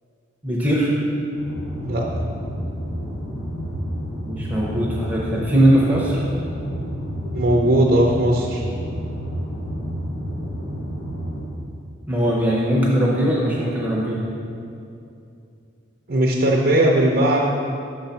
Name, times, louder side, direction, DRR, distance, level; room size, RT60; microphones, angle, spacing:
voice 1, 0.4-0.9 4.3-6.2 12.1-14.3, equal, 10° right, -5 dB, 0.7 m, -20 dB
sound 1, 1.3-11.4, equal, 80° left, 1.2 m, -30 dB
voice 2, 7.3-8.6 16.1-17.5, right 1 dB, 45° right, -1 dB, 0.5 m, -18 dB
6.6 x 3.9 x 5.6 m, 2.6 s
head